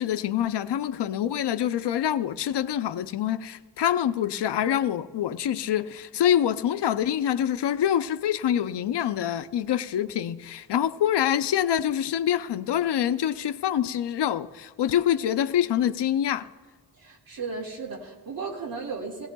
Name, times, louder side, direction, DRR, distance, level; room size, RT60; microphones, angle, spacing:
voice 1, 0.0-16.5, left 10 dB, 75° left, 0.6 m, -25 dB
voice 2, 16.9-19.3, right 4 dB, 55° right, 2.1 m, -35 dB
19.5 x 16.5 x 2.3 m
wide cardioid pair, 170°, 41 cm